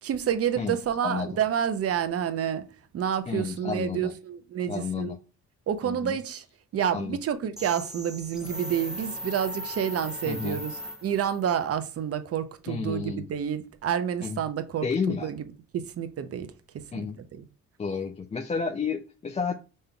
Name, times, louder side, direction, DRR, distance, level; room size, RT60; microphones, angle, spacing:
voice 1, 0.0-2.7 2.9-5.1 5.7-6.4 6.7-10.7 11.0-15.4 15.7-16.5 16.9-17.1, right 9 dB, 50° right, 0.7 m, -29 dB
voice 2, 3.3-4.1 4.7-5.2 5.8-6.2 6.9-7.2 10.2-10.6 12.7-13.3 14.2-14.4 14.8-15.3 16.9-17.2 17.8-19.5, left 5 dB, 20° left, 0.4 m, -31 dB
sound 1, 7.6-11.4, equal, ahead, 0.8 m, -38 dB
5.2 x 3.6 x 2.3 m
cardioid pair, 90°, 30 cm